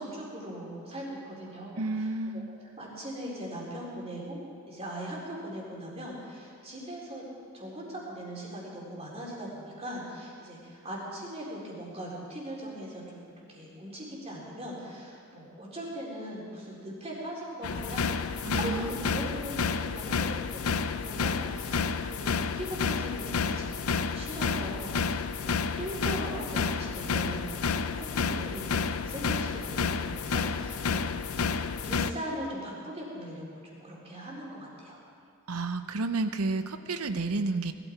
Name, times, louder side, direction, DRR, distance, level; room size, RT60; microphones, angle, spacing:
voice 1, 0.0-2.1 2.3-2.4 2.8-7.2 7.5-31.1 31.6-35.0, right 1 dB, 30° right, -4 dB, 3.8 m, -40 dB
voice 2, 1.8-2.5 18.4-19.0 35.5-37.7, right 3 dB, 90° right, 10 dB, 0.8 m, -31 dB
sound 1, 17.6-32.1, left 5 dB, 80° left, 0.6 m, -30 dB
19.5 x 13.0 x 4.6 m, 2.4 s
head